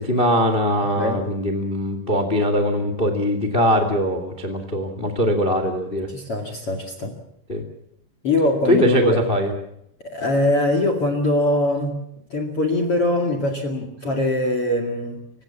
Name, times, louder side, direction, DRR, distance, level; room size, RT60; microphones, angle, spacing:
voice 1, 0.0-6.1 7.5-7.6 8.7-9.5, equal, 75° left, 8 dB, 0.5 m, -21 dB
voice 2, 1.0-1.3 6.1-7.1 8.2-9.3 10.0-12.0 12.3-15.2, left 1 dB, 45° left, 6 dB, 1.9 m, -22 dB
29.0 x 17.0 x 7.3 m, 0.74 s
omnidirectional pair, 6.0 m